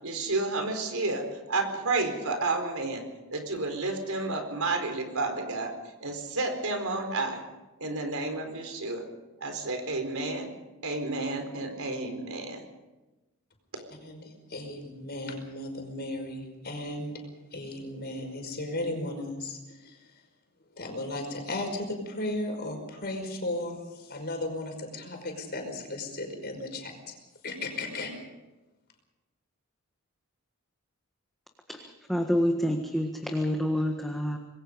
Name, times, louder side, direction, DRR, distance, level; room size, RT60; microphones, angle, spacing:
voice 1, 0.0-3.0 3.3-5.7 6.0-7.4 7.8-9.0 9.4-10.5 10.8-12.6, right 3 dB, 70° right, 5 dB, 4.4 m, -31 dB
voice 2, 14.0-17.2 17.5-20.1 20.8-27.1 27.4-28.1, left 1 dB, 45° left, 4 dB, 5.3 m, -35 dB
voice 3, 32.1-34.4, equal, ahead, 2 dB, 1.6 m, -27 dB
26.5 x 21.0 x 5.3 m, 1.1 s
head